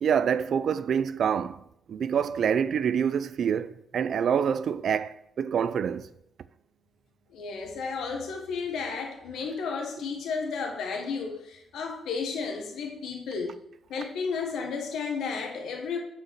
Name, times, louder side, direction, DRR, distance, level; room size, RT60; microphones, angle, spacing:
voice 1, 0.0-6.1, right 7 dB, 50° right, 0.3 m, -26 dB
voice 2, 7.3-13.5 13.9-16.0, left 5 dB, 80° left, 1.3 m, -33 dB
8.3 x 5.0 x 4.6 m
wide cardioid pair, 170°, 0 cm